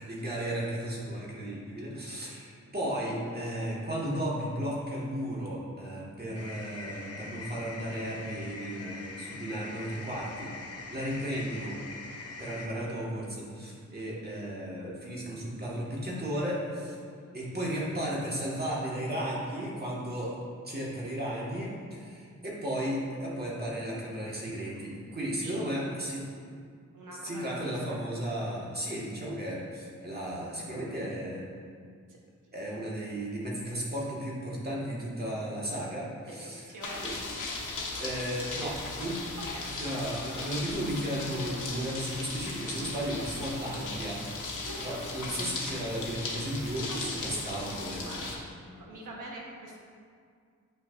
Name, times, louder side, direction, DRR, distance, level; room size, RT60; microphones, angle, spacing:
voice 1, 0.0-10.5 10.9-11.8 12.4-17.0 17.3-20.3 20.6-26.2 27.2-31.4 32.5-36.7 37.0-37.1 38.0-39.2 39.8-44.2 44.8-48.3, right 1 dB, 30° right, -5 dB, 1.8 m, -34 dB
sound 1, 6.3-12.7, left 3 dB, 55° left, 0.8 m, -43 dB
voice 2, 25.2-25.6 26.9-27.8 32.1-32.2 35.2-35.4 36.3-37.1 39.5-39.7 44.6-45.0 46.8-47.2 47.9-48.3 48.7-49.8, right 2 dB, 90° right, -2 dB, 1.3 m, -44 dB
sound 2, 36.8-48.4, left 3 dB, 80° left, 1.2 m, -37 dB
8.8 x 6.0 x 2.7 m, 2.1 s
cardioid pair, 70°, 30 cm